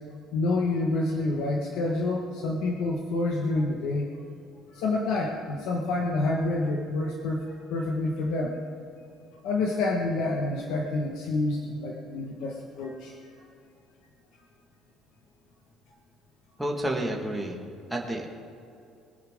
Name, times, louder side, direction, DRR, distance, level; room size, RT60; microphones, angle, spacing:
voice 1, 0.3-4.2 4.7-8.6 9.4-13.1, left 2 dB, 65° left, 0 dB, 1.5 m, -28 dB
voice 2, 16.6-17.6 17.9-18.3, right 1 dB, 5° right, -1 dB, 1.7 m, -30 dB
22.5 x 10.5 x 3.7 m, 2.6 s
cardioid pair, 170°, 0 cm